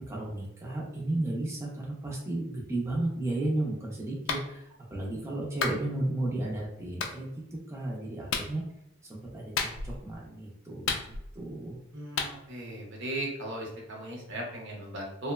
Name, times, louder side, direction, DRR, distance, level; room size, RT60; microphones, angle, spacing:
voice 1, 0.1-7.3 7.7-8.6 9.1-11.8, right 2 dB, 15° right, -4 dB, 0.4 m, -33 dB
Clapping, 4.3-4.5 5.6-5.8 7.0-7.2 8.3-8.5 9.6-10.0 10.9-11.4 12.2-12.3, left 5 dB, 65° left, 0.3 m, -31 dB
voice 2, 11.9-15.3, right 1 dB, 60° right, -1 dB, 0.7 m, -37 dB
2.9 x 2.0 x 2.2 m, 0.80 s
head